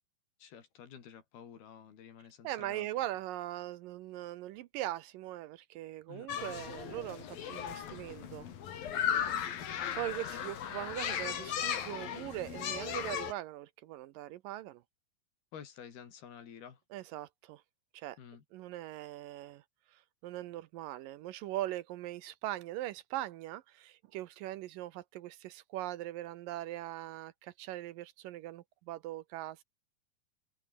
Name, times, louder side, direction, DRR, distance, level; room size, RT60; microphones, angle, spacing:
voice 1, 0.4-3.0 6.1-6.3 9.2-9.7 10.3-10.4 15.5-16.8 18.2-18.4, left 8 dB, 85° left, 5.1 m, -51 dB
voice 2, 2.4-8.5 9.9-14.8 16.9-17.6 17.9-18.2 18.5-19.6 19.9-29.6, right 15 dB, 75° right, 2.3 m, -41 dB
sound 1, 6.3-13.3, left 9 dB, 70° left, 4.2 m, -36 dB
omnidirectional pair, 4.3 m